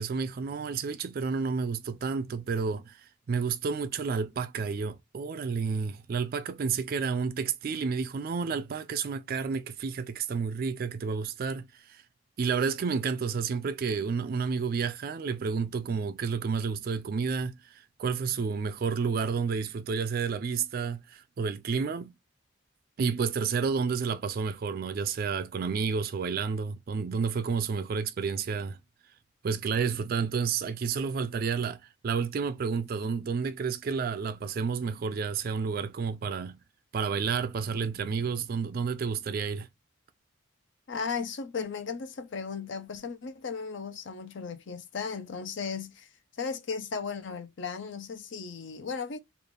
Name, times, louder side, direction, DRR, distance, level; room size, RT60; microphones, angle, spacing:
voice 1, 0.0-12.0 12.4-22.1 23.0-28.8 29.4-36.6 36.9-39.7, right 5 dB, 45° right, 0.3 m, -30 dB
voice 2, 40.9-46.1 46.4-49.2, left 5 dB, 65° left, 0.5 m, -36 dB
3.3 x 2.4 x 3.7 m
head